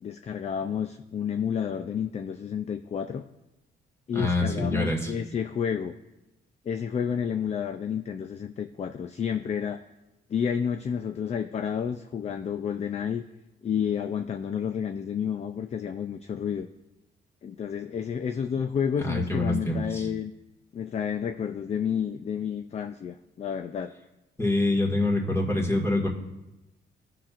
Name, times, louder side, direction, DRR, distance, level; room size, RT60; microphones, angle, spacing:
voice 1, 0.0-3.2 4.1-5.9 6.7-9.8 10.3-13.2 13.6-16.7 17.4-20.3 20.7-23.9, left 7 dB, 35° left, 8 dB, 0.4 m, -30 dB
voice 2, 4.1-5.1 19.0-20.1 24.4-26.1, left 2 dB, 15° left, -3 dB, 1.9 m, -25 dB
15.5 x 5.8 x 2.5 m, 1.0 s
cardioid pair, 90°, 20 cm